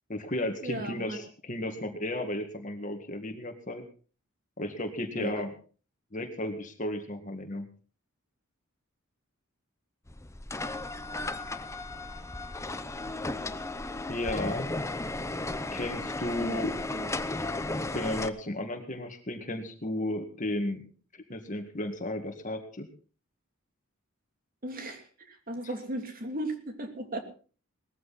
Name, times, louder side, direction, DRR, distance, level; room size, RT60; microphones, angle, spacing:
voice 1, 0.1-3.8 4.6-5.5 6.1-7.7 14.1-14.7 15.7-16.7 17.9-20.8 21.1-22.9, left 1 dB, 40° left, 5 dB, 2.0 m, -34 dB
voice 2, 0.6-1.2 5.2-5.4 13.2-13.5 16.4-17.2 24.6-27.2, right 1 dB, 45° right, 5 dB, 3.0 m, -37 dB
sound 1, 10.1-18.3, left 2 dB, 15° left, 0.8 m, -35 dB
19.5 x 14.0 x 4.2 m, 0.38 s
head